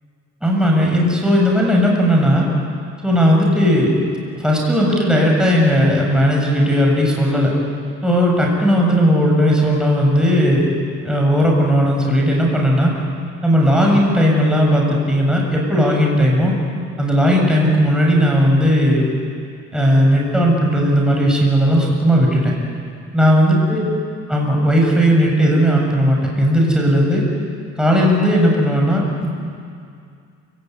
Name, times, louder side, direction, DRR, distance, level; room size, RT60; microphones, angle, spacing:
voice 1, 0.4-2.5 3.0-3.9 4.4-7.5 8.0-10.7 11.0-12.9 13.4-16.5 17.0-19.0 19.7-22.5 23.1-23.8 24.3-27.2 27.8-29.3, equal, ahead, -2 dB, 7.0 m, -16 dB
28.5 x 18.0 x 9.5 m, 2.3 s
cardioid pair, 90°, 30 cm